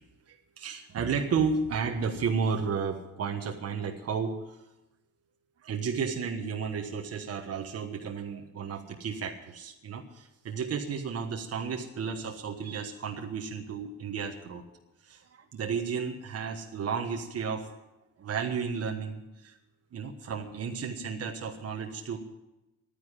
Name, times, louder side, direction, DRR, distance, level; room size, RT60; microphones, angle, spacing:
voice 1, 0.3-4.6 5.6-14.6 15.0-17.7 18.2-19.6 19.9-22.2, right 5 dB, 55° right, 3 dB, 1.4 m, -33 dB
12.0 x 10.0 x 9.8 m, 0.95 s
cardioid pair, 90°, 30 cm